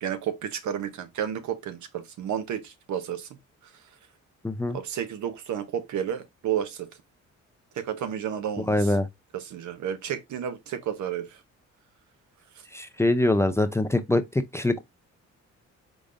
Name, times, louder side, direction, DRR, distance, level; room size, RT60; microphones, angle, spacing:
voice 1, 0.0-3.3 4.7-6.9 7.7-8.9 9.3-11.4, right 9 dB, 70° right, 0.9 m, -31 dB
voice 2, 4.4-4.8 8.7-9.1 12.7-14.2 14.5-14.8, left 1 dB, 10° left, 0.5 m, -23 dB
5.0 x 3.8 x 2.5 m
cardioid pair, 90°, 30 cm